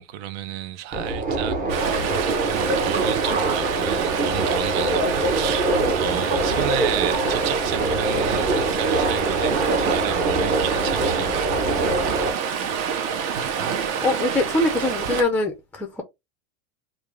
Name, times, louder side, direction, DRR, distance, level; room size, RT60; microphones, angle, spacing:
voice 1, 0.0-11.4, right 11 dB, 60° right, 0.6 m, -32 dB
Subway metro underground, 0.9-12.3, right 2 dB, 25° right, 1.1 m, -24 dB
Stream, 1.7-15.2, right 7 dB, 45° right, 0.9 m, -27 dB
voice 2, 14.0-16.0, left 2 dB, 5° left, 0.5 m, -23 dB
3.3 x 2.5 x 3.3 m
supercardioid pair, 130°, 36 cm